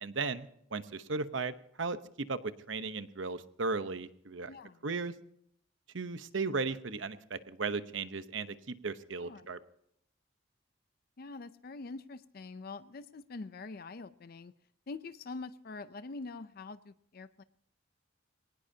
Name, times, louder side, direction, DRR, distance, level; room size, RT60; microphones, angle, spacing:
voice 1, 0.0-2.0 2.3-4.5 4.8-5.1 5.9-9.6, right 4 dB, 75° right, 11 dB, 0.9 m, -36 dB
voice 2, 4.5-4.9 9.2-9.5 11.2-14.5 14.9-17.4, left 3 dB, 50° left, 13 dB, 0.5 m, -45 dB
22.0 x 19.0 x 2.8 m, 0.71 s
head